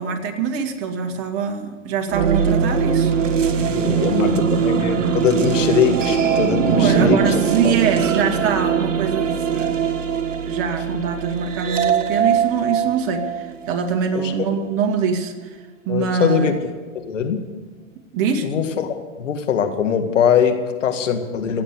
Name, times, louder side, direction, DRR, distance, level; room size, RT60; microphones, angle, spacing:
voice 1, 0.0-3.1 3.9-4.5 6.7-9.8 10.4-15.6 15.9-16.5 18.1-18.5, right 6 dB, 35° right, 5 dB, 2.2 m, -24 dB
sound 1, 2.1-13.9, right 7 dB, 70° right, 1.5 m, -21 dB
voice 2, 3.6-7.2 7.6-7.8 14.2-14.3 15.9-16.5 17.0-17.5 18.4-21.6, left 8 dB, 70° left, 6 dB, 2.1 m, -21 dB
16.5 x 8.7 x 9.7 m, 1.4 s
hypercardioid pair, 110°, 39 cm